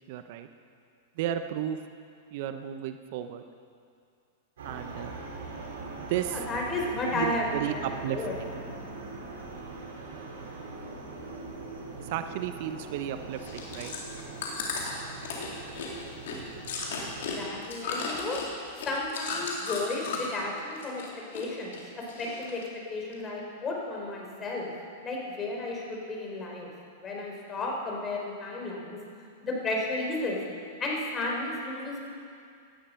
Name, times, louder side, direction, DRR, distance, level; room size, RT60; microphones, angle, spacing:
voice 1, 0.1-0.5 1.2-1.8 2.3-3.4 4.6-5.2 6.0-6.4 7.1-8.5 12.0-13.9 16.3-16.5, right 11 dB, 60° right, 8 dB, 0.8 m, -33 dB
sound 1, 4.6-17.5, right 3 dB, 75° right, 5.0 m, -41 dB
voice 2, 6.3-7.8 8.1-8.4 17.2-18.4 18.8-21.0 21.3-22.6 22.9-24.7 25.0-26.7 27.0-29.0 29.4-30.4 30.8-32.0, left 2 dB, 25° left, -1 dB, 4.5 m, -33 dB
Chewing mastication, 13.3-20.4 20.7-21.5 21.7-22.6 23.1-23.2, left 4 dB, 75° left, 3.5 m, -35 dB
18.0 x 12.0 x 5.8 m, 2.4 s
hypercardioid pair, 115°, 0 cm